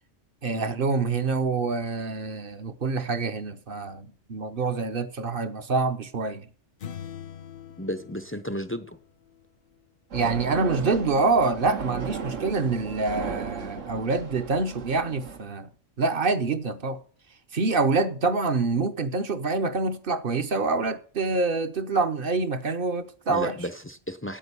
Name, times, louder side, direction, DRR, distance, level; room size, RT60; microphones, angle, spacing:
voice 1, 0.4-6.4 10.1-15.7 16.0-17.0 17.5-23.6, right 3 dB, 50° right, 1.0 m, -26 dB
sound 1, 6.8-9.5, left 8 dB, 55° left, 0.8 m, -43 dB
voice 2, 7.8-9.0 23.3-24.4, equal, 15° left, 0.5 m, -33 dB
sound 2, 10.1-15.4, right 6 dB, 85° right, 1.6 m, -35 dB
8.9 x 8.8 x 6.8 m
omnidirectional pair, 1.3 m